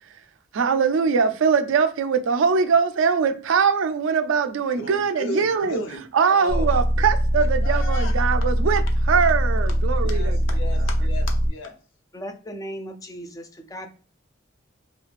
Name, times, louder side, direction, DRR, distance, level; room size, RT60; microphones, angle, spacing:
voice 1, 0.5-5.8 6.1-8.8 9.1-10.4, right 6 dB, 70° right, 0.4 m, -21 dB
voice 2, 4.8-6.0 6.3-6.7 7.4-8.1 10.0-11.7, left 2 dB, 70° left, 0.7 m, -34 dB
sound 1, 6.5-11.5, equal, 20° right, 0.7 m, -22 dB
voice 3, 12.1-13.9, equal, 15° left, 0.3 m, -36 dB
3.0 x 2.2 x 2.4 m
head